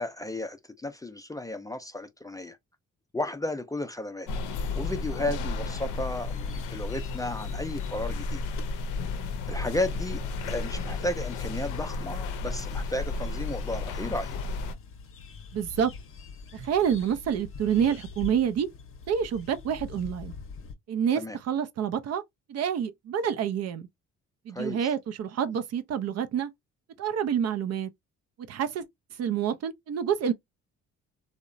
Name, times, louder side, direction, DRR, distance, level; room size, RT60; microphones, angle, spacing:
voice 1, 0.0-2.6 3.1-4.3 4.8-8.4 9.5-10.2 10.5-14.3 21.2-21.4 24.5-24.9, left 2 dB, 10° left, 0.4 m, -33 dB
sound 1, 4.3-14.7, left 3 dB, 85° left, 0.5 m, -33 dB
sound 2, 4.4-20.7, left 5 dB, 45° left, 0.7 m, -46 dB
voice 2, 15.5-15.9 16.5-18.7 19.1-20.3 20.9-22.2 22.5-23.9 24.5-26.5 27.0-27.9 28.4-28.9 29.2-30.3, right 8 dB, 55° right, 0.5 m, -28 dB
2.8 x 2.1 x 2.5 m
cardioid pair, 90°, 30 cm